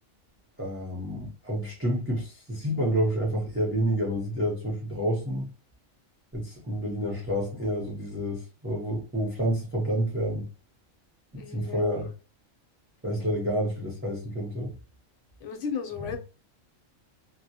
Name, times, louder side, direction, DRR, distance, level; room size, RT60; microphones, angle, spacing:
voice 1, 0.6-5.5 6.3-10.5 11.3-12.1 13.0-14.7, equal, 15° right, 0.5 m, -29 dB
voice 2, 11.3-12.0 13.2-13.3 15.4-16.2, left 6 dB, 70° left, 0.9 m, -35 dB
2.2 x 2.1 x 2.7 m
omnidirectional pair, 1.4 m